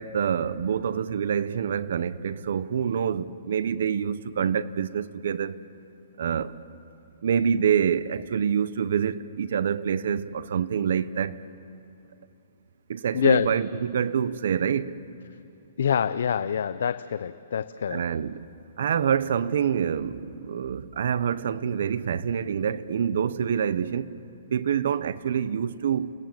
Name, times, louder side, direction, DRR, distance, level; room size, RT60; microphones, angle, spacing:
voice 1, 0.0-5.6 6.2-6.5 7.2-11.4 12.9-15.0 17.9-18.4 18.8-24.1 24.5-26.1, right 8 dB, 60° right, 0.8 m, -26 dB
voice 2, 13.1-13.5 15.8-18.0, left 8 dB, 65° left, 0.6 m, -25 dB
30.0 x 18.5 x 7.7 m
hypercardioid pair, 175°, 0 cm